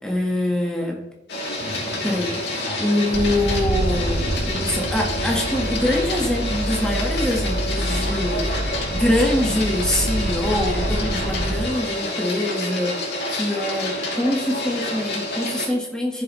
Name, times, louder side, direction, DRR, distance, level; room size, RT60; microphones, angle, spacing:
voice 1, 0.0-1.0 2.0-2.3 2.8-13.0 13.3-16.2, left 1 dB, 5° left, -1 dB, 1.4 m, -24 dB
Printer, 1.3-15.7, left 1 dB, 70° left, 2.7 m, -28 dB
sound 1, 1.6-7.0, equal, 55° right, 2.6 m, -41 dB
sound 2, 3.1-11.7, right 1 dB, 70° right, 0.9 m, -27 dB
15.0 x 7.0 x 3.1 m, 0.97 s
head